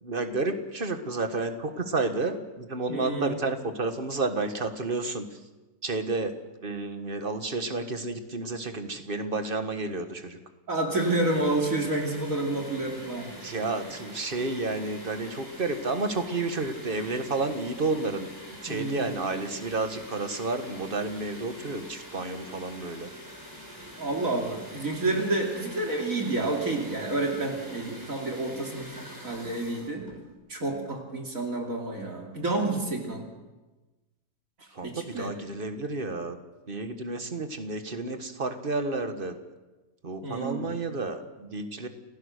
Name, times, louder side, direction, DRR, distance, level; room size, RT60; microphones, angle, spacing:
voice 1, 0.0-5.4 5.8-6.3 6.6-10.4 13.4-23.1 34.7-36.4 36.7-39.4 40.0-41.9, right 3 dB, 35° right, 8 dB, 1.7 m, -31 dB
voice 2, 2.9-3.4 10.7-13.3 18.7-19.1 24.0-30.0 30.5-33.3 34.8-35.3 40.2-40.7, right 2 dB, 60° right, 1 dB, 3.3 m, -29 dB
sound 1, 10.9-30.3, equal, 10° right, 5.6 m, -44 dB
30.0 x 16.0 x 6.6 m, 1.1 s
omnidirectional pair, 1.6 m